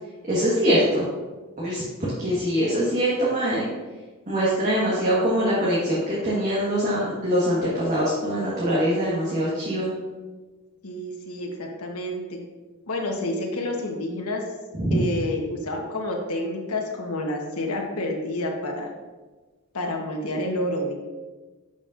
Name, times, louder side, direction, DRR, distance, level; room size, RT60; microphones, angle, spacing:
voice 1, 0.3-1.1 1.6-1.8 2.2-3.7 4.3-9.9 14.8-15.0, equal, 35° right, -7 dB, 1.5 m, -23 dB
voice 2, 10.8-12.4 12.9-14.4 14.9-18.9 19.7-21.0, left 1 dB, 90° left, 1 dB, 1.2 m, -29 dB
10.5 x 5.3 x 2.6 m, 1.3 s
head